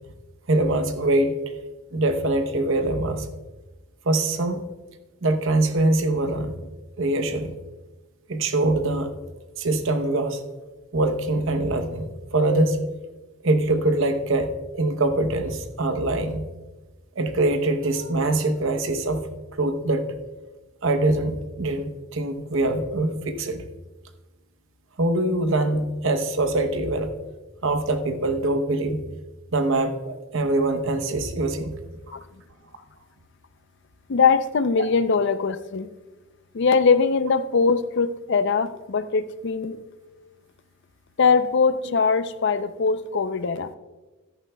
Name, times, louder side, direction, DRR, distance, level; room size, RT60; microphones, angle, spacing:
voice 1, 0.5-1.4 1.9-3.3 4.1-4.6 5.2-6.6 7.0-7.6 8.3-9.1 9.6-10.4 10.9-12.8 13.4-16.5 17.2-19.3 19.6-20.1 20.8-23.6 25.0-27.1 27.6-29.0 29.5-31.8 41.8-41.9, right 2 dB, 60° right, 8 dB, 0.8 m, -23 dB
voice 2, 34.1-35.9 36.5-39.8 41.2-43.7, left 5 dB, 55° left, 13 dB, 0.5 m, -21 dB
14.5 x 10.5 x 2.2 m, 1.2 s
head